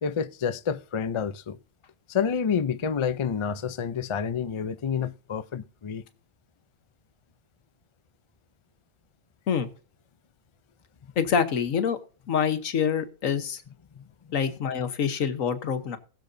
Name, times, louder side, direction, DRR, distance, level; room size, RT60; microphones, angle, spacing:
voice 1, 0.0-1.6 2.1-6.0 14.0-14.1, left 7 dB, 50° left, 0.3 m, -28 dB
voice 2, 11.2-12.0 12.3-13.6 14.3-16.0, left 7 dB, 85° left, 1.5 m, -26 dB
20.0 x 6.8 x 2.7 m
omnidirectional pair, 1.4 m